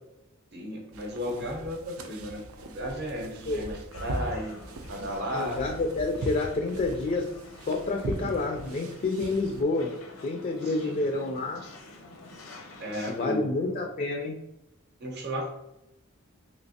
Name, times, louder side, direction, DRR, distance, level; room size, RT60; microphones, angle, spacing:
voice 1, 0.5-4.6 4.9-5.6 10.6-11.1 12.8-13.8 15.0-15.5, equal, 55° right, 2 dB, 0.7 m, -34 dB
sound 1, 0.9-9.6, right 2 dB, 90° right, 0.4 m, -40 dB
sound 2, 3.9-13.3, left 2 dB, 80° left, 0.7 m, -49 dB
voice 2, 5.3-7.3 7.6-9.9 10.2-11.6 13.1-14.4, left 3 dB, 40° left, 2 dB, 0.3 m, -29 dB
3.1 x 2.7 x 2.7 m, 0.91 s
head